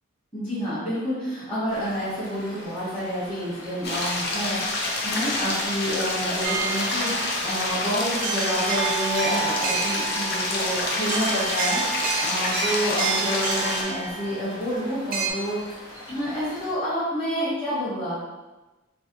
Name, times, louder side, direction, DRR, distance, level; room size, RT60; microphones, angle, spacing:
voice 1, 0.3-4.6 5.0-15.7 16.1-18.2, equal, 30° left, -14 dB, 1.2 m, -29 dB
sound 1, 1.7-16.7, left 1 dB, 80° left, 1.3 m, -43 dB
sound 2, 3.8-13.8, left 2 dB, 50° left, 0.6 m, -27 dB
sound 3, 6.4-15.3, right 5 dB, 45° right, 0.4 m, -30 dB
3.3 x 3.2 x 2.9 m, 1.1 s
head